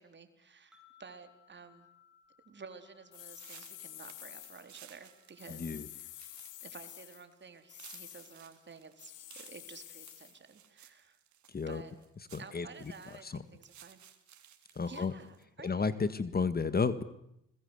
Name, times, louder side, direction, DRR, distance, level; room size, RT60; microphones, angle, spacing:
voice 1, 0.0-1.9 2.5-11.2 11.7-12.0 12.4-14.0 14.9-15.8, right 5 dB, 35° right, 8 dB, 3.9 m, -52 dB
sound 1, 0.7-10.0, left 7 dB, 5° right, 5.4 m, -69 dB
sound 2, 3.1-4.7 5.4-7.2 7.7-8.4 9.0-10.4, left 15 dB, 85° left, 1.5 m, -49 dB
sound 3, 3.3-15.4, right 10 dB, 70° right, 3.3 m, -58 dB
voice 2, 5.5-5.9 11.5-11.8 12.3-12.7 13.2-13.4 14.8-15.1 15.6-17.0, left 5 dB, 30° left, 14 dB, 1.7 m, -32 dB
30.0 x 21.5 x 8.2 m, 0.78 s
cardioid pair, 90°, 30 cm